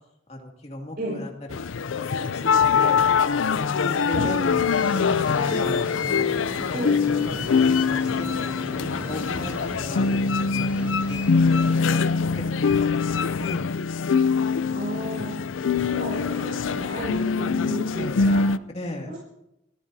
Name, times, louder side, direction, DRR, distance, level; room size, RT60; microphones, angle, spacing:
voice 1, 0.3-1.3 2.2-3.0 3.6-4.7 4.9-5.7 6.0-6.7 7.2-12.0 12.3-13.6 18.7-19.1, left 1 dB, 35° left, 0 dB, 2.4 m, -37 dB
sound 1, 1.5-18.6, left 5 dB, 85° left, 0.5 m, -23 dB
sound 2, 4.5-12.0, equal, 10° right, 4.7 m, -37 dB
voice 2, 6.7-7.0 14.7-15.4 15.8-18.5, right 1 dB, 50° right, -5 dB, 5.5 m, -33 dB
27.5 x 14.5 x 2.8 m, 0.84 s
head